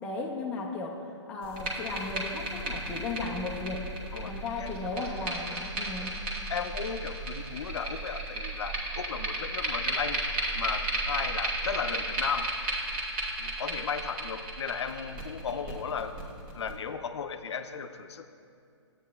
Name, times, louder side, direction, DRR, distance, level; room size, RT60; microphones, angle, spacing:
voice 1, 0.0-3.9 4.3-6.2, left 3 dB, 5° left, -2 dB, 0.3 m, -36 dB
sound 1, 1.4-16.7, right 2 dB, 25° right, 1.0 m, -34 dB
voice 2, 4.6-5.1 6.5-10.2 10.6-12.5 13.4-16.1 16.5-18.3, left 6 dB, 65° left, 9 dB, 0.5 m, -35 dB
12.0 x 8.3 x 2.2 m, 2.4 s
hypercardioid pair, 150°, 15 cm